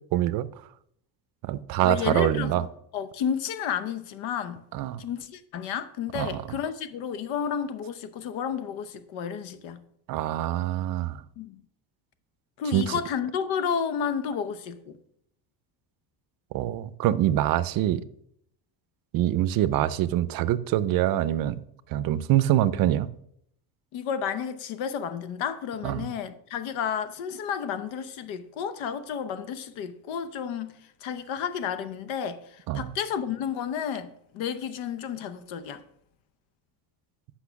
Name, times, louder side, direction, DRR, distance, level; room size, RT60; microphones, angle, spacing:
voice 1, 0.1-0.5 1.4-2.6 4.7-5.0 6.1-6.4 10.1-11.2 12.7-13.0 16.5-18.0 19.1-21.6 21.9-23.1 25.8-26.1 32.7-32.9, right 13 dB, 50° right, 0.5 m, -25 dB
voice 2, 1.8-2.7 2.9-4.6 5.0-9.8 11.4-11.6 12.6-15.0 23.9-30.7 31.0-35.8, left 7 dB, 85° left, 1.0 m, -31 dB
8.3 x 5.8 x 5.8 m
cardioid pair, 180°, 46 cm